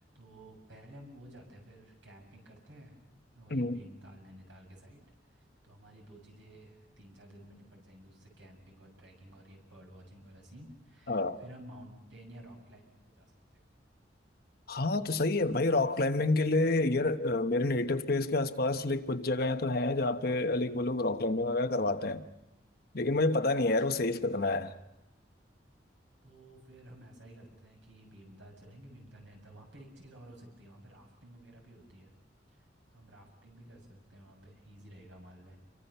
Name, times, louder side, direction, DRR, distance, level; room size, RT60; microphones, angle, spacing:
voice 1, 0.0-2.9 3.3-5.0 5.3-13.6 26.2-32.1 32.5-32.6 32.9-35.6, right 1 dB, 85° right, 7.1 m, -53 dB
voice 2, 11.1-11.4 14.7-22.2 22.9-24.7, left 2 dB, 55° left, 1.1 m, -28 dB
28.5 x 23.5 x 5.7 m
head